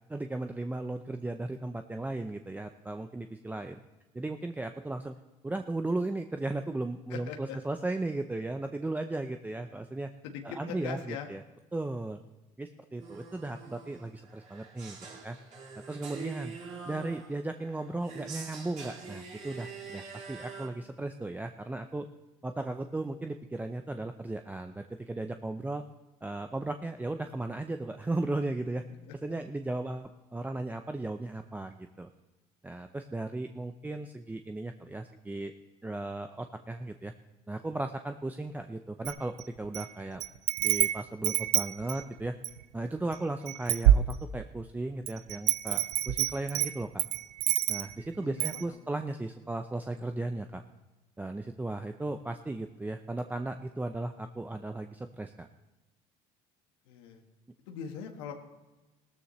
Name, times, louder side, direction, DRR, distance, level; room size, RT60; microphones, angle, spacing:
voice 1, 0.1-3.8 4.1-5.1 5.4-10.1 10.4-11.4 11.7-12.2 12.6-15.0 15.2-15.4 15.9-16.5 16.8-22.1 22.4-25.8 26.2-28.8 29.2-32.1 32.6-35.5 35.8-37.1 37.5-40.2 40.6-42.4 42.7-47.0 47.7-50.6 51.2-55.5, right 2 dB, 10° right, 6 dB, 0.6 m, -36 dB
voice 2, 7.1-7.6 10.2-11.3 29.1-29.2 48.2-48.8 56.8-57.2 57.7-58.3, left 7 dB, 80° left, 4 dB, 1.5 m, -41 dB
sound 1, 13.0-20.7, right 5 dB, 50° right, 3.0 m, -45 dB
Wind chime, 39.0-39.9 40.2-42.6 43.1-43.2 43.5-44.6 45.1-48.0 48.4-48.6, right 13 dB, 85° right, 0.5 m, -27 dB
17.5 x 13.5 x 3.2 m, 1.1 s
supercardioid pair, 85°, 15 cm